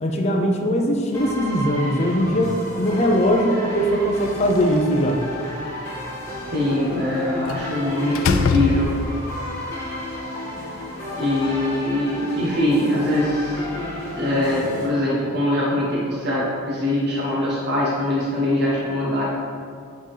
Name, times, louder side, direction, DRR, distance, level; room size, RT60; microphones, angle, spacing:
voice 1, 0.0-5.2, equal, 30° left, 1 dB, 0.6 m, -20 dB
sound 1, 1.1-14.9, left 1 dB, 10° left, 1.8 m, -32 dB
Slam, 4.3-5.3 7.5-7.7 8.1-9.4, left 5 dB, 70° left, 0.4 m, -24 dB
voice 2, 6.5-8.9 11.2-13.6 14.1-19.3, left 1 dB, 50° right, -6 dB, 1.2 m, -22 dB
8.9 x 4.0 x 4.9 m, 2.2 s
head